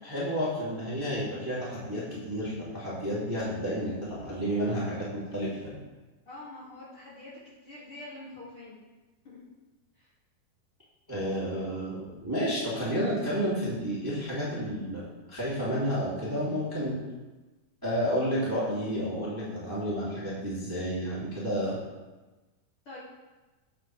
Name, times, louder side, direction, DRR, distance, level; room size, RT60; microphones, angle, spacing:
voice 1, 0.0-5.8 11.1-15.0 15.3-17.0 17.8-21.8, equal, 5° right, -9 dB, 2.3 m, -31 dB
voice 2, 6.3-7.3 7.6-8.8 9.2-9.4 10.0-10.1 11.3-11.5 22.9-23.0, left 2 dB, 40° left, -9 dB, 2.8 m, -45 dB
11.0 x 9.0 x 3.4 m, 1.2 s
omnidirectional pair, 4.4 m